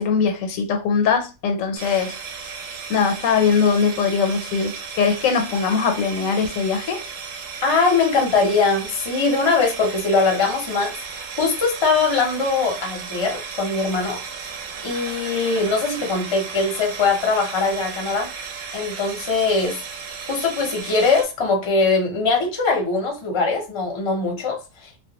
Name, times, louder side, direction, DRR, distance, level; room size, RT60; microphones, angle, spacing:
voice 1, 0.0-2.2 2.9-7.0, left 5 dB, 85° left, 1.0 m, -21 dB
sound 1, 1.8-21.2, right 5 dB, 85° right, 1.0 m, -35 dB
voice 2, 7.6-10.9 11.4-14.2 14.8-18.3 18.7-19.8 20.3-25.0, left 4 dB, 35° left, 0.5 m, -21 dB
2.3 x 2.1 x 2.8 m
omnidirectional pair, 1.3 m